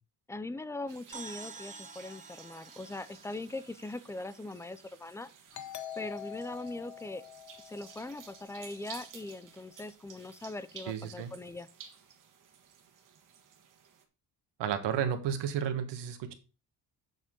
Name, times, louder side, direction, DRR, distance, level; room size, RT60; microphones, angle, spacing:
voice 1, 0.3-5.3 6.0-7.2 7.6-11.7, left 2 dB, 10° left, 15 dB, 0.3 m, -41 dB
sound 1, 0.9-14.0, right 7 dB, 50° right, 1.6 m, -54 dB
sound 2, 1.1-4.8, right 4 dB, 20° right, 0.7 m, -49 dB
Doorbell, 5.5-8.9, left 10 dB, 45° left, 0.9 m, -45 dB
voice 2, 10.9-11.3 14.6-16.3, right 8 dB, 80° right, 9 dB, 1.5 m, -32 dB
8.1 x 7.3 x 3.8 m, 0.32 s
cardioid pair, 155°, 41 cm